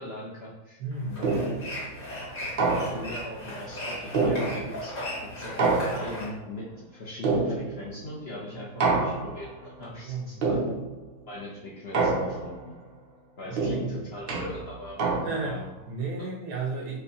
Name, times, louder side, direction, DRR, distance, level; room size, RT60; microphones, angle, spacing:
voice 1, 0.0-0.8 1.2-1.3 2.4-4.9 5.4-10.6 11.3-12.8 13.4-15.0 15.4-15.7, left 1 dB, 60° left, -5 dB, 0.6 m, -40 dB
voice 2, 0.8-1.6 9.9-10.3 13.4-13.9 15.2-17.0, right 3 dB, 85° right, -2 dB, 1.4 m, -34 dB
sound 1, 0.9-6.3, equal, 35° left, 1.1 m, -37 dB
sound 2, 1.2-1.8 2.6-3.3 4.1-4.9 5.6-6.4 7.2-8.0 8.8-9.5 10.4-11.1 11.9-12.7 13.6-15.6, right 3 dB, 60° right, 0.6 m, -27 dB
4.9 x 2.2 x 2.7 m, 0.94 s
omnidirectional pair, 1.7 m